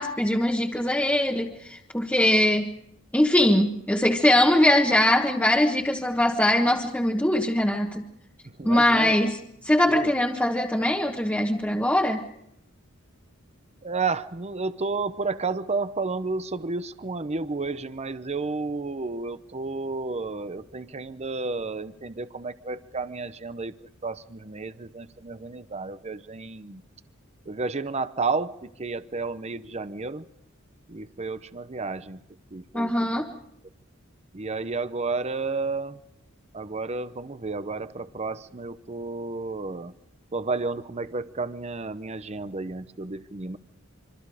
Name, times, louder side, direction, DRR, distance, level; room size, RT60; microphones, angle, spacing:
voice 1, 0.0-2.7 3.1-8.1 8.6-9.4 9.6-12.2 32.7-33.3, left 1 dB, 10° left, 1.4 m, -22 dB
voice 2, 8.6-9.2 9.8-10.1 13.8-23.7 24.0-26.8 27.5-30.2 30.9-32.2 32.5-33.3 34.3-36.0 36.5-39.9 40.3-43.6, right 3 dB, 30° right, 0.8 m, -31 dB
26.5 x 25.0 x 4.9 m
head